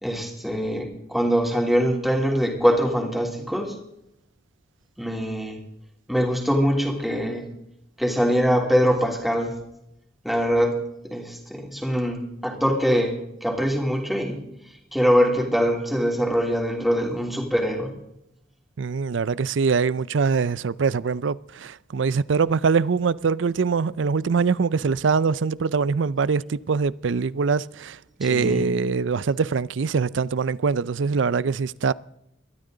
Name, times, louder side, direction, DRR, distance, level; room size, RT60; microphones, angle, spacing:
voice 1, 0.0-3.8 5.0-5.6 6.1-7.5 8.0-9.6 10.2-14.4 14.9-17.9 28.2-28.7, equal, ahead, 3.2 m, -23 dB
voice 2, 18.8-31.9, right 5 dB, 70° right, 0.5 m, -23 dB
21.5 x 13.5 x 3.9 m
head